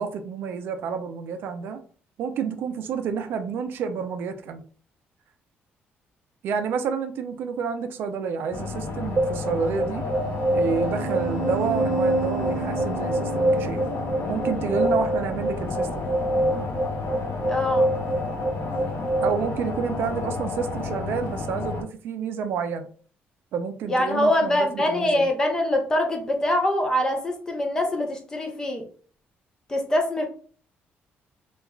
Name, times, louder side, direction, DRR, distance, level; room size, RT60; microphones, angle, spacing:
voice 1, 0.0-1.8 2.2-4.7 6.4-10.1 10.5-13.8 14.3-15.9 19.2-22.9 23.5-25.3, right 6 dB, 65° right, 7 dB, 0.4 m, -29 dB
sound 1, 8.5-21.8, left 4 dB, 70° left, 0.6 m, -31 dB
sound 2, 9.2-19.3, right 2 dB, 25° right, 0.6 m, -26 dB
voice 2, 17.5-17.9 23.9-28.8 29.7-30.3, left 1 dB, 15° left, 2 dB, 0.6 m, -24 dB
3.0 x 2.3 x 2.2 m, 0.43 s
cardioid pair, 155°, 4 cm